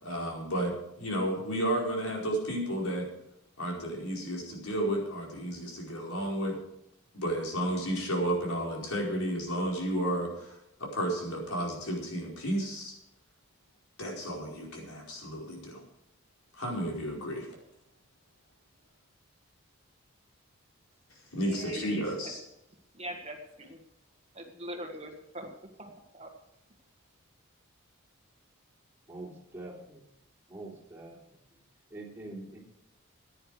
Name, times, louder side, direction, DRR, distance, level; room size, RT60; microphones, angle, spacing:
voice 1, 0.0-3.1 3.6-6.6 7.1-13.0 14.0-15.8 16.5-17.5 21.3-22.4, right 1 dB, 85° left, -2 dB, 4.9 m, -32 dB
voice 2, 21.4-21.9 22.2-22.4 22.9-23.8 24.3-26.3, equal, 30° right, 3 dB, 1.6 m, -42 dB
voice 3, 29.1-30.1 30.5-31.2 31.5-31.6 31.9-32.6, right 2 dB, 10° right, -5 dB, 3.6 m, -44 dB
15.5 x 10.0 x 5.0 m, 0.82 s
head